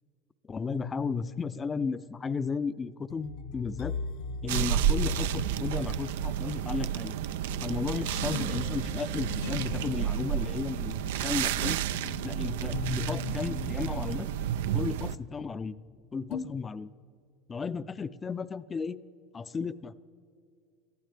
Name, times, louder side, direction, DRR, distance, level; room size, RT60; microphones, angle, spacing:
voice 1, 0.5-3.9 4.4-7.1 7.6-11.8 12.2-14.3 14.7-15.7 16.1-16.9 17.5-19.0 19.3-19.9, left 5 dB, 20° left, 14 dB, 0.5 m, -34 dB
sound 1, 0.7-15.9 16.3-16.5, left 5 dB, 70° left, 0.8 m, -40 dB
sound 2, 4.5-15.2, right 11 dB, 85° right, 0.4 m, -31 dB
21.0 x 14.5 x 3.4 m, 2.5 s
supercardioid pair, 115°, 0 cm